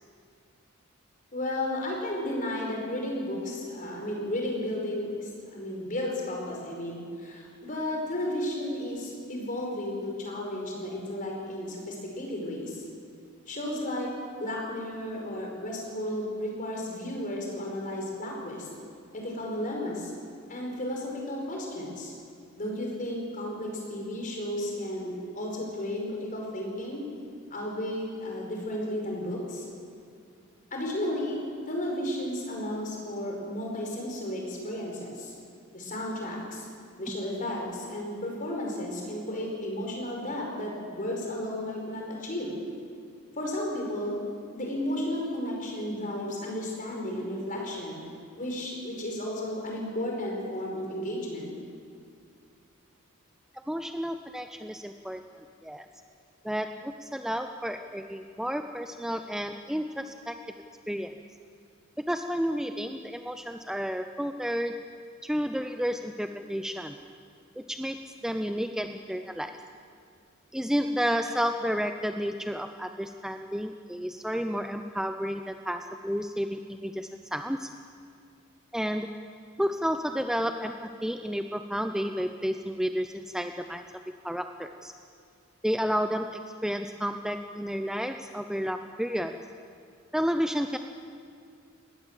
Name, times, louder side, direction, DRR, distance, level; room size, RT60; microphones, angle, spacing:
voice 1, 1.3-12.8 13.5-14.1 14.4-18.7 19.1-20.1 20.5-22.1 22.6-27.0 27.5-29.7 30.7-31.4 31.7-35.3 35.7-36.7 37.0-42.5 43.4-44.2 44.5-48.0 48.4-51.5, left 1 dB, 40° left, 0 dB, 5.1 m, -33 dB
voice 2, 53.5-55.2 55.6-55.9 56.4-60.4 60.9-61.1 62.1-64.8 65.2-67.0 67.6-69.5 70.5-77.7 78.7-79.1 79.6-83.9 84.2-84.9 85.6-89.4 90.1-90.8, equal, 5° right, 7 dB, 0.6 m, -31 dB
20.0 x 17.5 x 7.5 m, 2.3 s
head